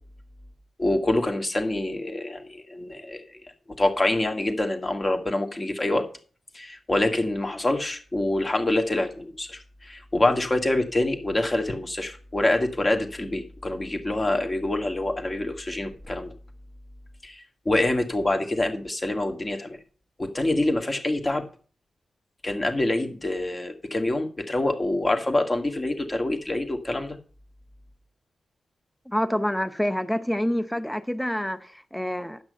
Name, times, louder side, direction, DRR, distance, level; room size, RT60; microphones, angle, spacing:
voice 1, 0.8-3.4 3.8-6.0 6.5-16.3 17.2-19.8 20.2-21.4 22.4-27.2, left 1 dB, 30° left, 2.0 m, -26 dB
voice 2, 29.1-32.4, left 1 dB, 5° left, 0.8 m, -27 dB
9.9 x 6.1 x 6.5 m
cardioid pair, 60°, 0 cm